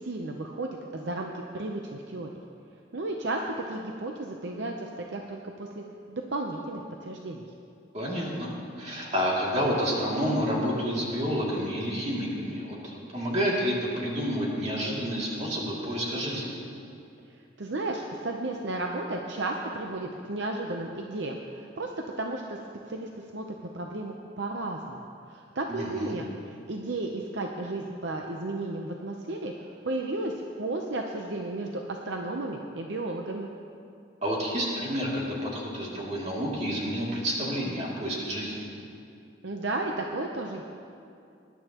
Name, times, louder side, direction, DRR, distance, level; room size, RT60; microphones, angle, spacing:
voice 1, 0.0-2.3 2.9-7.5 17.6-21.9 22.2-22.6 22.9-23.4 23.7-30.3 30.6-33.5 39.4-40.6, right 2 dB, 65° right, 1 dB, 0.7 m, -33 dB
voice 2, 7.9-8.5 8.8-16.6 25.7-26.2 34.2-38.7, equal, 35° right, -5 dB, 2.6 m, -29 dB
20.5 x 11.0 x 3.0 m, 2.5 s
head